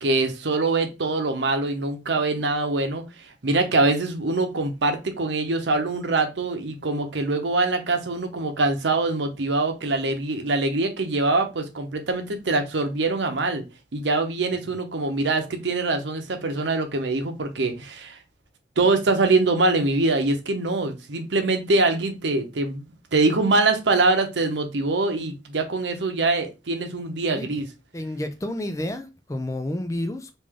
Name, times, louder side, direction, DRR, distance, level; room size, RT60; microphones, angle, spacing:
voice 1, 0.0-13.6 13.9-18.2 18.8-22.9 23.1-27.6, right 3 dB, 85° right, 0.7 m, -24 dB
voice 2, 27.9-30.4, left 1 dB, 20° left, 0.4 m, -30 dB
3.2 x 2.5 x 3.6 m
head